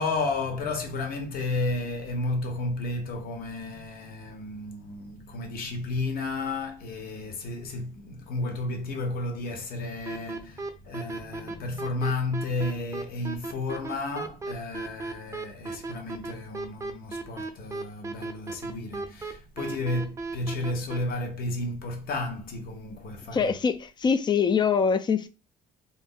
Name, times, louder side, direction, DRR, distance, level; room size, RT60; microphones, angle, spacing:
voice 1, 0.0-23.5, left 2 dB, 60° left, 0.9 m, -32 dB
sound 1, 10.1-21.0, right 3 dB, 20° right, 0.6 m, -35 dB
voice 2, 23.3-25.3, left 6 dB, 25° left, 0.3 m, -24 dB
2.6 x 2.0 x 3.7 m
cardioid pair, 110°, 17 cm